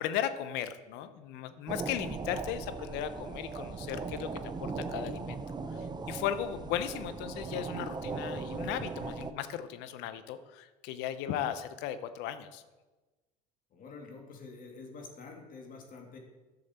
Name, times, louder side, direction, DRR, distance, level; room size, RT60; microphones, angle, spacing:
voice 1, 0.0-5.4 5.7-12.6, left 10 dB, 70° left, 11 dB, 0.8 m, -36 dB
sound 1, 1.7-9.3, right 4 dB, 20° right, 0.6 m, -38 dB
voice 2, 13.7-16.2, left 4 dB, 45° left, 2 dB, 2.2 m, -47 dB
10.5 x 6.4 x 4.3 m, 1.2 s
hypercardioid pair, 80°, 19 cm